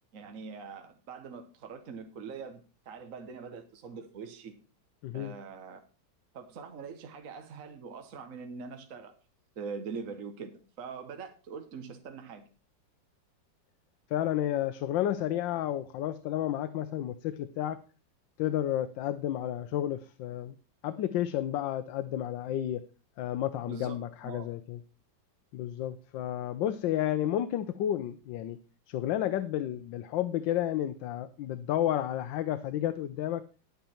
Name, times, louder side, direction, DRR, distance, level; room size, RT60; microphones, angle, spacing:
voice 1, 0.1-4.6 5.1-5.8 6.3-9.1 9.6-12.4 23.7-24.5, right 5 dB, 50° right, 1.4 m, -43 dB
voice 2, 5.0-5.3 14.1-17.8 18.4-20.5 20.8-22.8 23.2-24.8 25.5-28.6 28.9-33.4, left 12 dB, 75° left, 1.3 m, -31 dB
10.5 x 9.1 x 4.3 m
omnidirectional pair, 2.1 m